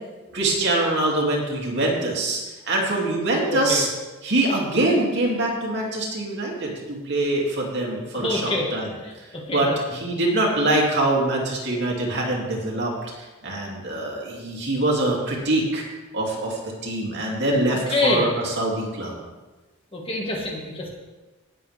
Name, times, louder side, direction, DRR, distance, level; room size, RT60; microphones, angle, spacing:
voice 1, 0.3-2.4 2.7-3.9 4.2-8.9 9.5-15.8 16.1-19.2, right 2 dB, 55° right, -2 dB, 2.6 m, -24 dB
voice 2, 3.5-3.8 8.1-8.7 9.0-9.6 17.7-18.3 19.9-20.9, left 2 dB, 25° left, -1 dB, 1.7 m, -26 dB
18.0 x 7.8 x 3.4 m, 1.2 s
head